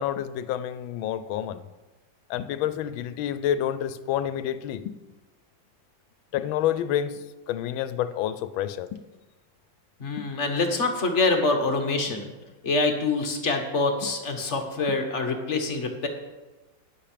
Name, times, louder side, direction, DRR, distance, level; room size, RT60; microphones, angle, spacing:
voice 1, 0.0-1.6 2.3-4.8 6.3-7.2 7.5-8.9, left 10 dB, 85° left, 13 dB, 1.4 m, -28 dB
voice 2, 10.0-12.3 12.6-16.1, left 3 dB, 40° left, 4 dB, 1.3 m, -25 dB
10.0 x 8.7 x 5.0 m, 1.2 s
omnidirectional pair, 2.2 m